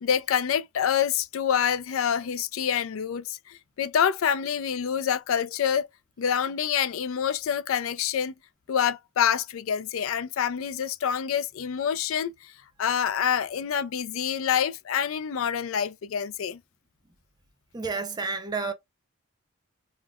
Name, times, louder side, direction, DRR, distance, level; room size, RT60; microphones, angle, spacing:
voice 1, 0.0-5.9 6.2-8.3 8.7-12.3 12.8-16.6, left 8 dB, 80° left, 0.4 m, -26 dB
voice 2, 17.7-18.7, right 4 dB, 20° right, 0.5 m, -30 dB
3.7 x 2.1 x 2.2 m
head